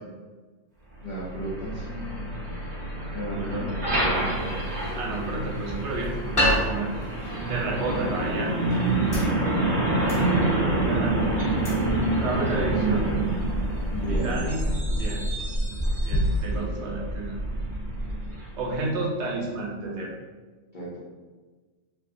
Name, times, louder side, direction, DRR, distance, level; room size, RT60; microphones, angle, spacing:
voice 1, 1.0-2.2 3.1-4.6 10.7-11.3 13.0-13.3 13.9-14.5 16.4-17.0 19.8-20.1 20.7-21.0, equal, 50° left, -7 dB, 0.6 m, -35 dB
Truck, 1.0-18.7, right 1 dB, 35° right, 0.9 m, -27 dB
voice 2, 3.3-3.7 4.9-6.9 7.5-8.5 10.6-11.4 12.2-13.1 14.1-14.6 15.0-15.3 16.0-17.3 18.6-20.1, right 2 dB, 60° right, -2 dB, 0.9 m, -31 dB
sound 1, 4.1-14.3, left 1 dB, 25° left, 0.9 m, -34 dB
sound 2, 6.2-16.7, equal, 85° left, 1.0 m, -38 dB
3.4 x 2.4 x 2.5 m, 1.3 s
omnidirectional pair, 1.4 m